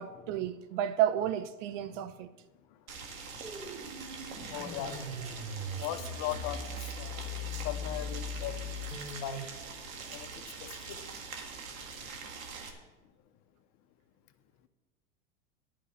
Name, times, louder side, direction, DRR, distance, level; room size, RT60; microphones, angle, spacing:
voice 1, 0.0-2.3, right 11 dB, 65° right, 0.8 m, -31 dB
voice 2, 2.6-3.7 4.5-8.7 9.1-9.5 10.1-11.0 11.9-12.3 13.0-13.1, left 12 dB, 40° left, 0.9 m, -41 dB
Boiling, 2.9-12.7, right 5 dB, 85° right, 1.9 m, -44 dB
sound 1, 3.4-9.5, left 2 dB, 15° right, 3.6 m, -40 dB
11.5 x 5.5 x 8.6 m
hypercardioid pair, 115°, 40 cm